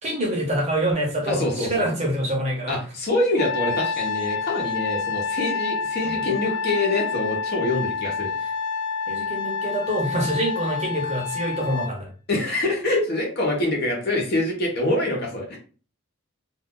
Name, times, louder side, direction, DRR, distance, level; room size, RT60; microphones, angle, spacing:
voice 1, 0.0-2.8 6.0-6.2 9.1-12.1, right 1 dB, 30° right, -1 dB, 1.0 m, -26 dB
voice 2, 1.3-1.9 2.7-8.5 12.3-15.6, left 2 dB, 45° left, -1 dB, 1.0 m, -25 dB
Trumpet, 3.4-11.9, left 5 dB, 65° left, 0.5 m, -28 dB
2.6 x 2.4 x 3.7 m, 0.38 s
head